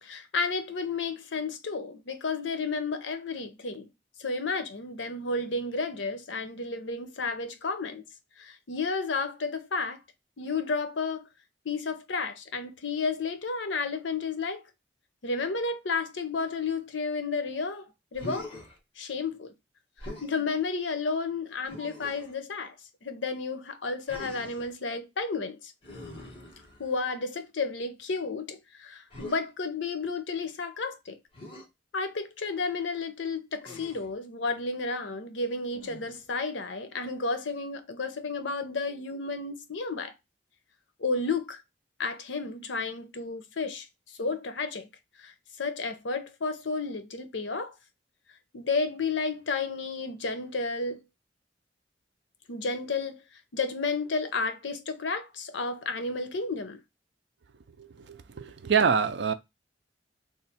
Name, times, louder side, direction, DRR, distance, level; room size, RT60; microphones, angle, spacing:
voice 1, 0.0-3.9 4.2-8.0 8.4-10.0 10.4-11.3 11.6-14.6 15.2-18.5 19.0-19.5 20.0-22.7 23.0-25.7 26.8-31.2 31.9-40.1 41.0-41.6 42.0-44.9 45.2-47.7 48.5-51.0 52.5-53.2 53.5-56.8, left 4 dB, 85° left, 0.7 m, -32 dB
Human voice, 18.1-18.8 20.0-20.3 21.7-22.3 24.1-24.7 25.8-27.1 29.1-29.4 31.3-31.7 33.6-34.1 35.7-36.3, left 1 dB, 30° left, 1.2 m, -43 dB
voice 2, 57.8-59.3, right 6 dB, 65° right, 0.5 m, -26 dB
3.2 x 2.4 x 4.2 m
head